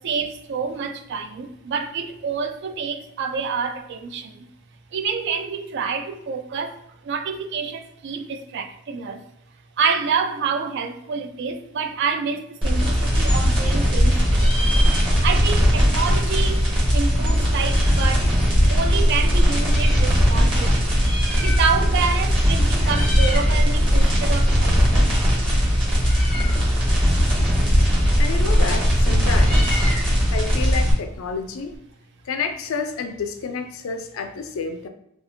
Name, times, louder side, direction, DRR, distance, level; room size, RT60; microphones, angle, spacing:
voice 1, 0.0-4.5 4.9-9.2 9.8-14.8 15.2-18.3 18.7-21.1 21.4-25.1, right 5 dB, 55° right, 0.3 m, -28 dB
sound 1, 12.6-30.9, equal, 25° right, 1.1 m, -18 dB
Meow, 13.0-14.0 14.3-15.5 15.8-18.2 18.9-20.1 20.8-22.0 22.3-22.5 22.8-23.5 23.9-31.8, left 1 dB, 5° left, 0.5 m, -35 dB
voice 2, 28.2-29.8 30.3-31.7 32.3-34.9, left 5 dB, 75° left, 0.4 m, -29 dB
2.8 x 2.3 x 2.6 m
head